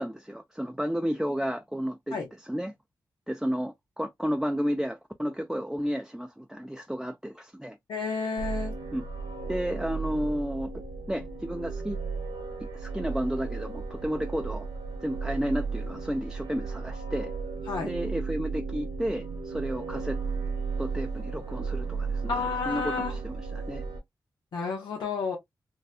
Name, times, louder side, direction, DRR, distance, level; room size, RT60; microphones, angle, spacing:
voice 1, 0.0-2.7 3.3-7.8 8.9-9.0 9.4-12.0 12.7-14.7 15.0-17.3 17.8-20.2 20.8-23.8, equal, 5° right, 0.4 m, -32 dB
voice 2, 7.9-8.7 17.7-17.9 22.3-23.2 24.5-25.4, left 4 dB, 90° left, 0.7 m, -30 dB
sound 1, 8.4-24.0, right 4 dB, 80° right, 0.9 m, -35 dB
2.7 x 2.2 x 2.4 m
cardioid pair, 40°, 8 cm